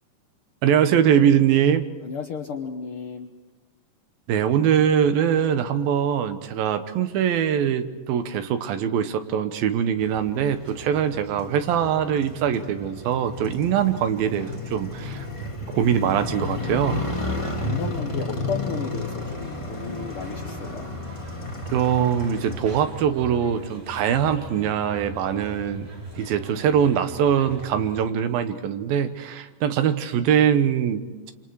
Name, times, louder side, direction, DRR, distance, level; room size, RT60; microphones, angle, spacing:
voice 1, 0.6-1.9 4.3-15.3 15.7-17.1 21.7-25.9 26.2-31.3, right 8 dB, 85° right, 9 dB, 2.9 m, -22 dB
voice 2, 2.0-3.3 17.6-20.9, left 6 dB, 70° left, 2 dB, 1.3 m, -33 dB
Motorcycle, 10.0-22.6, left 2 dB, 15° left, 1.1 m, -32 dB
sound 1, 18.9-28.0, equal, 65° right, 7.4 m, -40 dB
28.0 x 26.0 x 4.7 m, 1.2 s
omnidirectional pair, 4.1 m